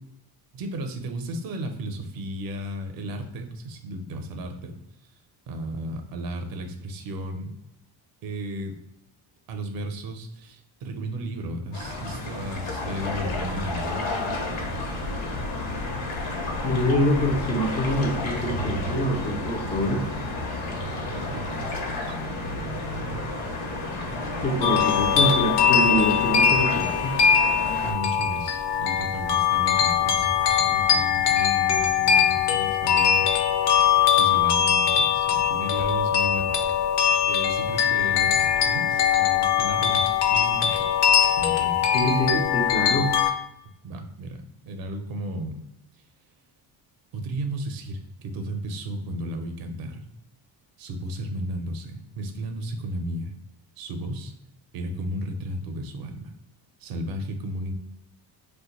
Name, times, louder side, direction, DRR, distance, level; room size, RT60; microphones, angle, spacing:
voice 1, 0.5-4.8 5.5-7.6 8.2-8.8 9.5-14.2 14.5-14.6 21.0-22.2 22.5-22.6 24.8-25.0 27.8-33.3 34.2-36.9 37.3-41.0 41.3-41.9 43.8-45.6 47.1-50.1 50.8-53.3 53.8-54.3 54.7-56.3 56.8-57.7, right 1 dB, 50° right, 6 dB, 0.5 m, -34 dB
sound 1, 11.7-27.9, left 2 dB, 85° left, 0.9 m, -31 dB
voice 2, 16.6-20.0 24.4-27.2 41.9-43.1, equal, 15° left, 2 dB, 0.4 m, -25 dB
sound 2, 24.6-43.3, left 8 dB, 65° left, 0.5 m, -21 dB
2.5 x 2.2 x 4.0 m, 0.82 s
cardioid pair, 140°, 45 cm